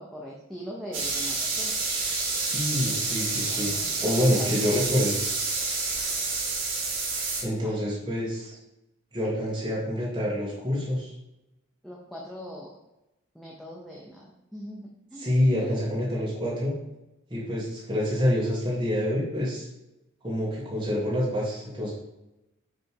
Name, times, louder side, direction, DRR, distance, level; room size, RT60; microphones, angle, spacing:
voice 1, 0.0-1.7 3.5-4.5 7.6-8.0 11.8-12.7 13.3-15.3 15.6-16.1, equal, ahead, -4 dB, 0.7 m, -41 dB
sound 1, 0.9-7.4, right 3 dB, 60° right, 1.8 m, -29 dB
voice 2, 2.4-3.7 4.0-5.2 7.4-8.6 9.1-11.1 15.2-16.7 17.3-19.7 20.2-21.9, left 1 dB, 20° right, -6 dB, 1.7 m, -27 dB
6.5 x 3.4 x 4.6 m, 0.92 s
head